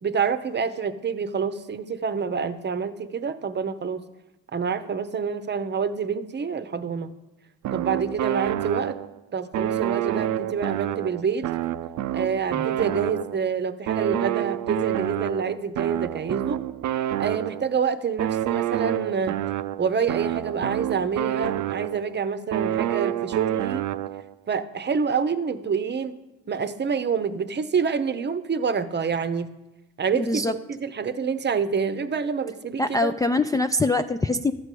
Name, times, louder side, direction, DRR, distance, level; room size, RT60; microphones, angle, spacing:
voice 1, 0.0-4.0 4.5-7.1 7.7-9.0 9.3-11.5 12.1-16.6 17.2-19.4 19.8-23.8 24.5-26.1 26.5-29.5 30.0-33.1, right 6 dB, 35° right, 12 dB, 0.8 m, -27 dB
sound 1, 7.6-9.2 9.5-13.5 13.9-17.8 18.2-22.1 22.5-24.3, right 12 dB, 70° right, 0.5 m, -28 dB
voice 2, 30.1-30.5 32.8-34.5, left 2 dB, 10° left, 5 dB, 0.3 m, -23 dB
13.0 x 4.8 x 8.3 m, 0.99 s
cardioid pair, 90°, 30 cm